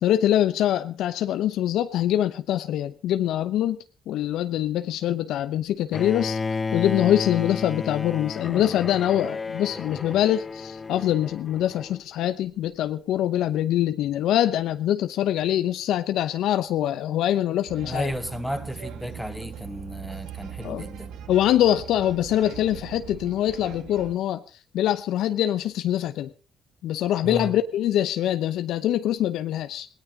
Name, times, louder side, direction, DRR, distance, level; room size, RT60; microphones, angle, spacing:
voice 1, 0.0-3.8 4.1-6.4 6.7-18.1 20.6-20.9 21.3-24.4 24.7-26.3 26.8-29.9, left 12 dB, 85° left, 0.8 m, -24 dB
Bowed string instrument, 5.9-12.0, left 4 dB, 30° left, 0.7 m, -32 dB
sound 1, 17.7-24.2, right 9 dB, 85° right, 1.5 m, -40 dB
voice 2, 17.8-21.1 27.2-27.5, equal, ahead, 1.8 m, -33 dB
17.5 x 17.5 x 3.8 m
cardioid pair, 90°, 0 cm